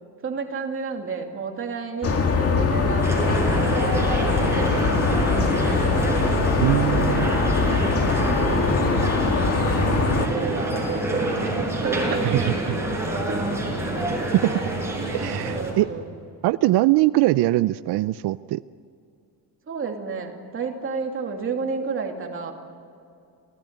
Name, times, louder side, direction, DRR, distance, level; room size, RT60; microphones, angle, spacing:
voice 1, 0.2-6.1 6.3-7.5 8.1-9.2 10.1-13.7 15.5-16.2 19.7-22.5, right 5 dB, 35° right, 2 dB, 2.8 m, -32 dB
sound 1, 2.0-10.3, left 4 dB, 40° left, 2.1 m, -22 dB
sound 2, 3.0-15.7, right 1 dB, 5° right, 6.0 m, -27 dB
voice 2, 6.6-7.3 12.3-12.5 15.1-15.9 16.4-18.6, right 17 dB, 90° right, 15 dB, 0.6 m, -21 dB
28.5 x 17.5 x 9.4 m, 2.5 s
cardioid pair, 180°, 38 cm